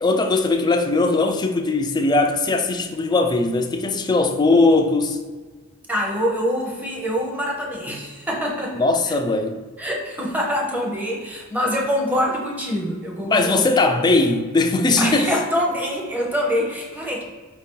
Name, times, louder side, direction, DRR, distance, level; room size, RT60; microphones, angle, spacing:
voice 1, 0.0-5.2 8.8-9.6 13.2-15.3, left 3 dB, 20° left, 0.3 m, -19 dB
voice 2, 5.9-8.8 9.1-9.2 9.8-13.5 15.0-17.2, equal, 10° right, 0.7 m, -25 dB
4.6 x 2.7 x 3.6 m
head